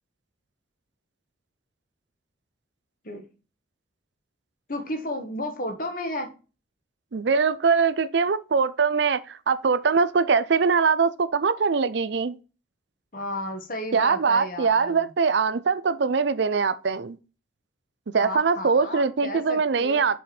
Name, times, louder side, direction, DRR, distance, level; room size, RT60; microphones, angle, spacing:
voice 1, 4.7-6.3 13.1-15.1 18.2-20.1, left 1 dB, 45° left, 1.5 m, -33 dB
voice 2, 7.1-12.4 13.9-17.2 18.1-20.2, right 5 dB, 60° right, 0.5 m, -22 dB
6.3 x 5.1 x 4.3 m
head